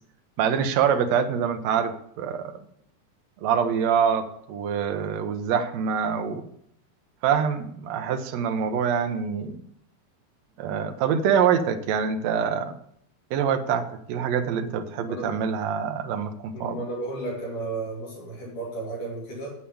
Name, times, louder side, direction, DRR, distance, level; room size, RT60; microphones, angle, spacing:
voice 1, 0.4-2.6 3.4-6.5 7.2-9.6 10.6-12.7 13.3-16.8, right 7 dB, 70° right, 7 dB, 1.8 m, -25 dB
voice 2, 15.0-15.4 16.5-19.5, right 2 dB, 65° left, -1 dB, 4.1 m, -33 dB
8.3 x 7.7 x 8.5 m, 0.70 s
omnidirectional pair, 4.0 m